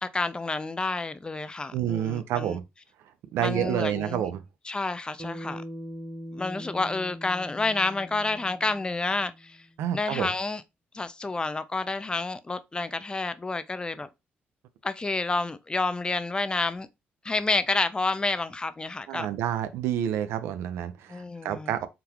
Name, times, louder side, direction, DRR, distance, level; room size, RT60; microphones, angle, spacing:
voice 1, 0.0-2.6 3.4-4.2 4.7-5.6 6.3-9.6 9.9-10.6 10.9-14.1 14.8-16.9 17.2-19.3 21.1-21.7, left 3 dB, 20° left, 0.4 m, -29 dB
voice 2, 1.7-2.6 3.3-4.4 9.8-10.3 19.1-21.9, right 10 dB, 85° right, 0.4 m, -29 dB
Bass guitar, 5.2-9.6, equal, 15° right, 0.9 m, -41 dB
3.8 x 2.3 x 2.9 m
cardioid pair, 80°, 4 cm